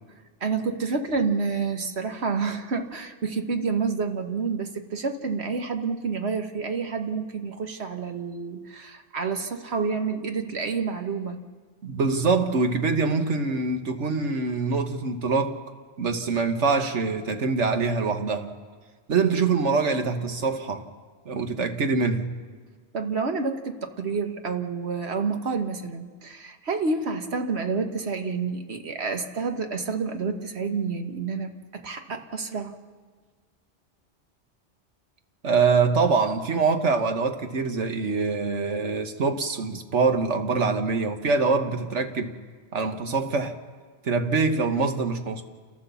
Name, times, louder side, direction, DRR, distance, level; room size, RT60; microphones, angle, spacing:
voice 1, 0.4-11.4 22.9-32.7, right 4 dB, 65° right, 1.6 m, -29 dB
voice 2, 11.8-15.6 16.0-18.5 19.1-20.9 21.2-22.3 35.4-42.4 42.7-43.6 44.0-45.4, right 4 dB, 85° right, 1.6 m, -24 dB
29.0 x 14.0 x 7.0 m
omnidirectional pair, 1.2 m